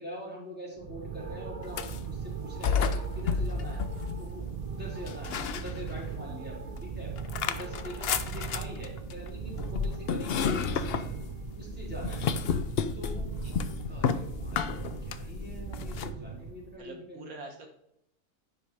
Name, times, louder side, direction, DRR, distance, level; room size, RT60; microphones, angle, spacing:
voice 1, 0.0-3.8 4.2-7.1 7.5-11.1 11.5-12.3 12.9-13.4 13.8-17.4, left 1 dB, 5° right, -5 dB, 4.0 m, -44 dB
sound 1, 0.8-16.8, right 6 dB, 45° right, 0.5 m, -39 dB
sound 2, 1.6-2.1 2.6-4.6 5.1-6.2 6.6-16.1, left 6 dB, 55° left, 0.7 m, -32 dB
voice 2, 16.8-17.7, right 2 dB, 75° right, 3 dB, 1.7 m, -45 dB
10.5 x 5.6 x 4.8 m, 0.78 s
omnidirectional pair, 1.5 m